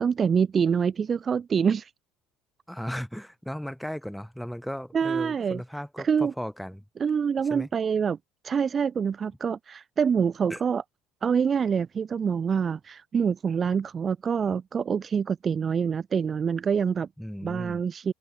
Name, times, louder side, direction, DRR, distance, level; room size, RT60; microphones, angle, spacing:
voice 1, 0.0-1.9 4.9-5.6 6.0-6.3 7.0-8.2 8.4-10.8 11.2-17.1 17.4-18.1, right 6 dB, 35° right, 0.6 m, -26 dB
voice 2, 2.7-6.8 7.5-7.7 10.5-10.6 17.2-17.8, equal, ahead, 1.2 m, -36 dB
open air
hypercardioid pair, 75°, 0 cm